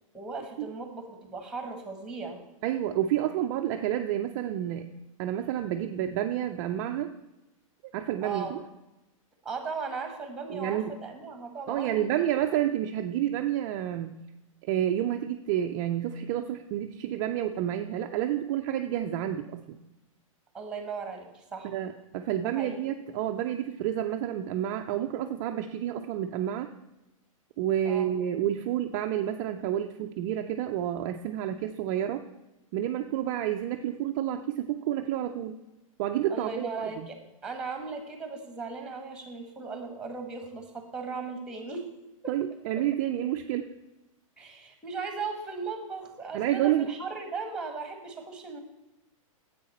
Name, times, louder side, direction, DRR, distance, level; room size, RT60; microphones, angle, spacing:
voice 1, 0.1-2.4 8.2-8.5 9.4-12.1 12.3-12.4 20.5-21.7 22.4-22.8 27.8-28.1 36.3-37.1 37.4-41.9 44.4-48.6, right 4 dB, 5° right, 5 dB, 1.4 m, -37 dB
voice 2, 2.6-4.9 5.2-7.1 7.9-8.6 10.5-10.9 11.7-14.1 14.6-19.8 21.6-26.7 27.6-32.2 32.7-35.6 36.0-37.1 42.3-43.7 46.3-46.9, right 11 dB, 35° right, 5 dB, 0.4 m, -29 dB
9.6 x 8.0 x 4.2 m, 0.97 s
hypercardioid pair, 145°, 18 cm